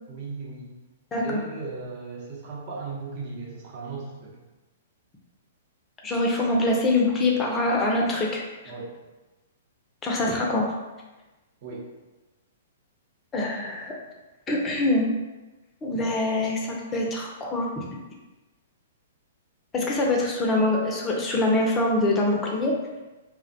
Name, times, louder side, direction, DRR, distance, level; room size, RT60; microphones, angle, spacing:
voice 1, 0.1-0.7 1.2-4.4 8.7-9.0 11.6-11.9, right 4 dB, 45° right, -5 dB, 0.8 m, -36 dB
voice 2, 6.0-8.4 10.0-10.7 13.3-14.0 14.5-15.1 15.8-17.9 19.7-22.8, left 2 dB, 20° left, -1 dB, 0.5 m, -24 dB
2.3 x 2.1 x 2.7 m, 1.1 s
figure-of-eight pair, 115°, 0 cm